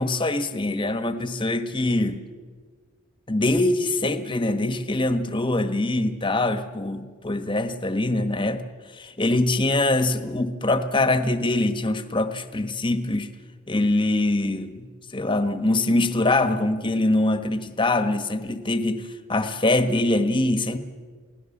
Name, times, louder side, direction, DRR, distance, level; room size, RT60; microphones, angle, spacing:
voice 1, 0.0-2.1 3.3-8.6 8.9-13.3 13.7-19.0 19.3-20.8, left 2 dB, 25° left, 9 dB, 1.3 m, -23 dB
28.0 x 17.5 x 7.3 m, 1.5 s
head